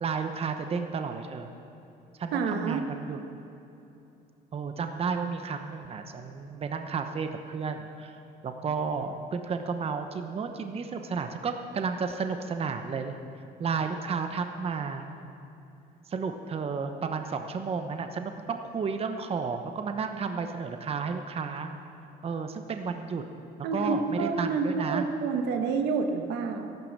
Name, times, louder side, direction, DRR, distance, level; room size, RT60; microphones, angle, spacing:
voice 1, 0.0-1.5 2.2-3.2 4.5-8.2 8.4-13.1 13.6-15.0 16.1-21.7 22.2-23.2 23.7-25.1, right 5 dB, 35° right, 6 dB, 0.9 m, -32 dB
voice 2, 2.3-2.8 23.6-26.7, right 4 dB, 85° right, 5 dB, 1.4 m, -28 dB
13.5 x 12.0 x 7.4 m, 2.9 s
cardioid pair, 110°, 17 cm